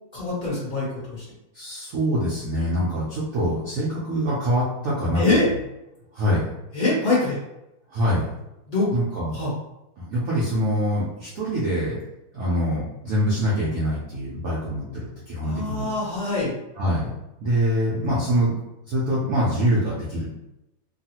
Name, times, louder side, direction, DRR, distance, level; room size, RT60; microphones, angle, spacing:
voice 1, 0.1-1.2 5.1-5.5 6.7-7.4 8.7-8.9 9.3-9.5 15.4-16.5, left 2 dB, 35° left, -7 dB, 0.9 m, -24 dB
voice 2, 1.5-5.4 6.1-6.5 7.9-8.3 8.9-9.4 10.0-12.0 12.3-15.9 16.8-17.1 17.4-18.6 18.9-20.3, equal, 60° right, -8 dB, 0.8 m, -24 dB
3.2 x 2.4 x 2.9 m, 0.91 s
omnidirectional pair, 2.2 m